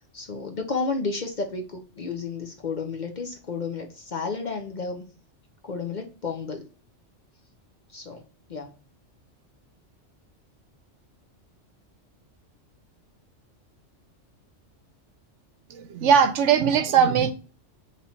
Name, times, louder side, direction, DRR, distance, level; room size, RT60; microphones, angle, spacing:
voice 1, 0.1-5.0 5.6-6.6 7.9-8.2 8.5-8.7, left 4 dB, 45° left, 0.7 m, -32 dB
voice 2, 15.7-17.3, right 7 dB, 75° right, 0.9 m, -20 dB
4.1 x 3.1 x 4.2 m
omnidirectional pair, 1.3 m